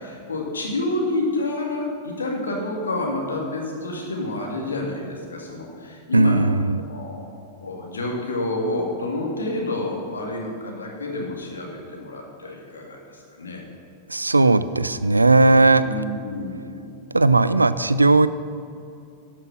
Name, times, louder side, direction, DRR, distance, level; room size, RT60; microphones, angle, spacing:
voice 1, 0.0-6.5 6.9-13.6 15.8-16.9, left 2 dB, 75° left, 0 dB, 2.1 m, -29 dB
voice 2, 6.1-6.8 14.1-15.9 17.1-18.3, right 2 dB, 85° right, 15 dB, 0.4 m, -17 dB
12.0 x 6.0 x 6.1 m, 2.5 s
figure-of-eight pair, 90°, 0 cm